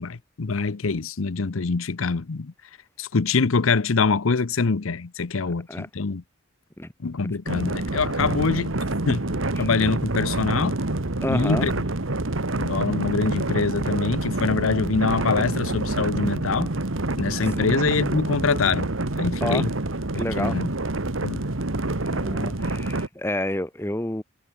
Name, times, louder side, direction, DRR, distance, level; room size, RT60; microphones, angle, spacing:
voice 1, 0.0-2.5 3.0-6.2 7.0-8.7 9.1-9.2 9.6-10.7 11.3-11.7 12.5-16.7 17.2-18.9 19.2-19.7 20.1-20.7 21.2-21.4, left 4 dB, 80° left, 0.7 m, -24 dB
voice 2, 5.5-5.9 6.8-6.9 7.2-7.3 9.6-9.7 11.2-11.7 17.4-17.7 19.4-19.6 20.1-20.6 22.1-24.2, left 1 dB, 10° left, 1.7 m, -30 dB
sound 1, 7.5-23.1, right 2 dB, 70° right, 1.7 m, -27 dB
head